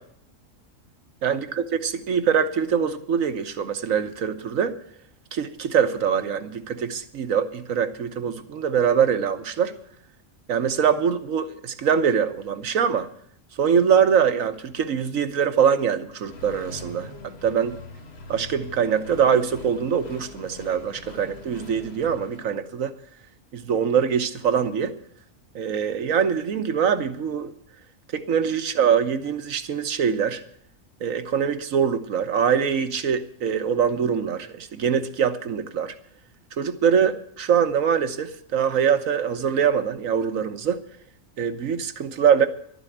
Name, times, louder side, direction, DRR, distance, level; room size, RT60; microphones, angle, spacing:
voice 1, 1.2-4.8 5.3-9.7 10.5-13.1 13.5-17.1 17.4-17.8 18.3-22.9 23.5-25.0 25.5-27.5 28.1-30.4 31.0-35.9 36.6-40.8 41.4-42.5, right 7 dB, 85° right, 1.4 m, -23 dB
Accelerating revving vroom, 16.2-22.4, left 3 dB, 50° left, 1.7 m, -42 dB
12.0 x 9.5 x 8.0 m
omnidirectional pair, 1.3 m